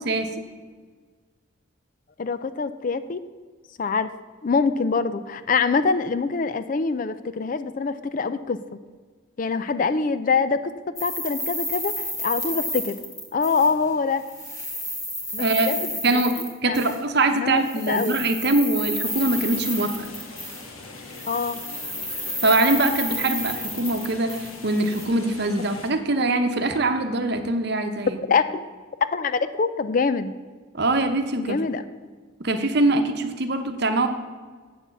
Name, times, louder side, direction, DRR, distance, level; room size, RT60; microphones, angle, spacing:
voice 1, 2.2-3.2 3.8-4.1 4.4-8.8 9.4-10.7 11.0-13.0 13.3-14.2 15.3-16.2 16.7-16.9 17.3-18.2 21.3-21.6 28.3-28.7 29.1-30.3 31.4-31.8, left 4 dB, 40° left, 13 dB, 0.4 m, -24 dB
sound 1, 11.0-13.9 14.2-17.0 17.6-20.8 21.1-25.1, left 1 dB, 15° left, 1.5 m, -31 dB
voice 2, 15.4-15.7 16.0-20.1 22.4-28.2 30.7-31.6 32.4-34.1, right 2 dB, 50° right, 7 dB, 0.9 m, -23 dB
sound 2, 19.0-25.9, left 3 dB, 85° left, 1.6 m, -42 dB
8.3 x 7.0 x 7.0 m, 1.5 s
head